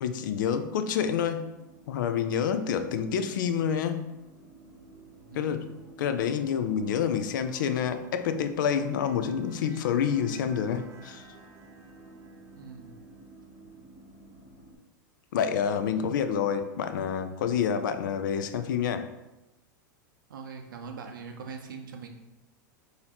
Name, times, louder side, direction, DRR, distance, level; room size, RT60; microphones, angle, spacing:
voice 1, 0.0-1.5 1.9-4.1 5.3-5.7 6.0-11.2 15.3-19.1, left 7 dB, 75° left, 9 dB, 0.4 m, -28 dB
sound 1, 1.0-14.8, right 2 dB, 25° right, 0.7 m, -52 dB
voice 2, 5.2-5.8 12.5-13.0 20.3-22.1, right 5 dB, 90° right, 4 dB, 0.6 m, -42 dB
4.0 x 2.7 x 2.9 m, 0.99 s
hypercardioid pair, 115°, 11 cm